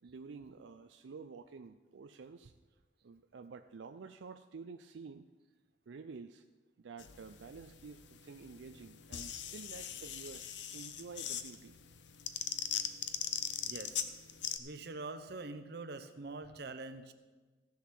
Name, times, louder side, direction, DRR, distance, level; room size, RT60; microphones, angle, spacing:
voice 1, 0.0-2.5 3.0-5.3 5.9-6.5 6.8-11.8, right 4 dB, 85° right, 8 dB, 0.4 m, -50 dB
sound 1, 7.0-14.6, left 9 dB, 75° left, 0.7 m, -41 dB
voice 2, 13.6-14.1 14.6-17.1, right 3 dB, 60° right, 9 dB, 0.8 m, -44 dB
15.0 x 7.1 x 6.0 m, 1.3 s
head